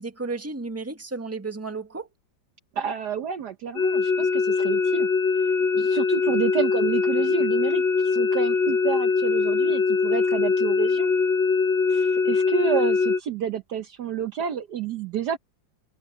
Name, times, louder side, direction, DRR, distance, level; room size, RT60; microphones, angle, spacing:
voice 1, 0.0-2.1, right 3 dB, 10° right, 1.5 m, -33 dB
voice 2, 2.8-5.1 5.7-11.1 11.9-15.4, right 8 dB, 65° right, 1.4 m, -29 dB
sound 1, 3.8-13.2, left 4 dB, 65° left, 2.3 m, -22 dB
omnidirectional pair, 2.1 m